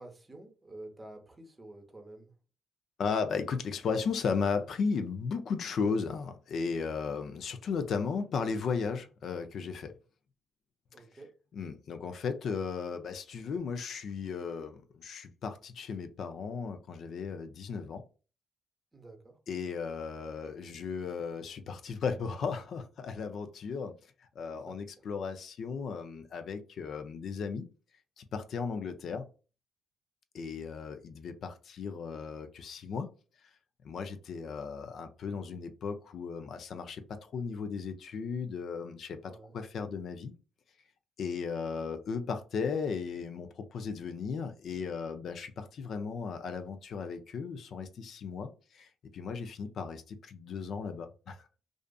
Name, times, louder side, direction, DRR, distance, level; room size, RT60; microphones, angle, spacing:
voice 1, 0.0-2.3 10.9-11.3 18.9-19.4 24.5-24.8 39.2-39.6, right 2 dB, 20° right, 0.7 m, -50 dB
voice 2, 3.0-9.9 11.5-18.0 19.5-23.9 24.4-27.7 28.2-29.3 30.3-33.1 33.8-40.3 41.2-51.4, left 5 dB, 65° left, 0.4 m, -35 dB
2.4 x 2.4 x 2.2 m
supercardioid pair, 65°, 0 cm